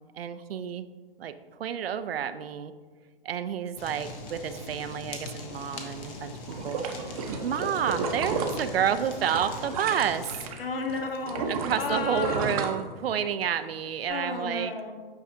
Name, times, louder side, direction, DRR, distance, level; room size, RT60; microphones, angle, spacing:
voice 1, 0.1-0.9 1.2-1.3 1.6-2.7 3.2-6.8 7.4-10.3 11.5-14.7, right 8 dB, 75° right, 11 dB, 0.5 m, -30 dB
Fire, 3.8-10.5, left 2 dB, 15° left, 0.5 m, -41 dB
sound 1, 6.5-10.6 10.9-13.4 13.8-13.9, right 5 dB, 40° right, 0.7 m, -32 dB
voice 2, 10.6-12.5 14.1-14.9, left 4 dB, 70° left, 4 dB, 1.1 m, -32 dB
8.2 x 4.8 x 2.6 m, 1.4 s
hypercardioid pair, 140°, 30 cm